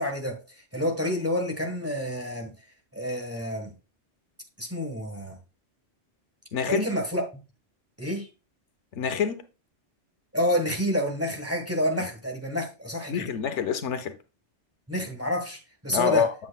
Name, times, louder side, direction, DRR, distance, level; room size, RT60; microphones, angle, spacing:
voice 1, 0.0-2.5 2.9-3.7 4.6-5.3 6.7-7.2 8.0-8.3 10.3-13.3 14.9-16.3, equal, 10° right, 1.3 m, -28 dB
voice 2, 6.5-6.9 8.9-9.4 13.1-14.1 15.9-16.3, left 7 dB, 75° left, 1.0 m, -26 dB
8.2 x 7.5 x 2.3 m
omnidirectional pair, 1.2 m